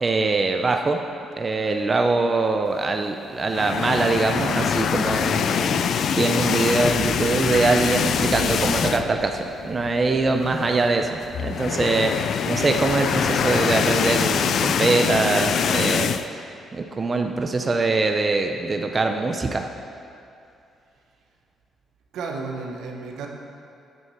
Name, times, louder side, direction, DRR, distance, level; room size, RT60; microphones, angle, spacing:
voice 1, 0.0-1.0 1.4-5.8 6.1-11.0 11.4-12.1 12.5-16.4 16.7-19.7, right 3 dB, 30° right, 5 dB, 0.5 m, -23 dB
sound 1, 3.4-9.3 9.6-9.8 10.1-10.2 11.2-16.3, left 7 dB, 65° left, 0.4 m, -24 dB
sound 2, 6.8-12.1, left 3 dB, 40° left, 1.2 m, -37 dB
voice 2, 10.6-11.1 12.0-12.3 22.1-23.3, right 4 dB, 80° right, 1 dB, 1.1 m, -34 dB
9.3 x 6.2 x 5.7 m, 2.6 s
cardioid pair, 90°, 0 cm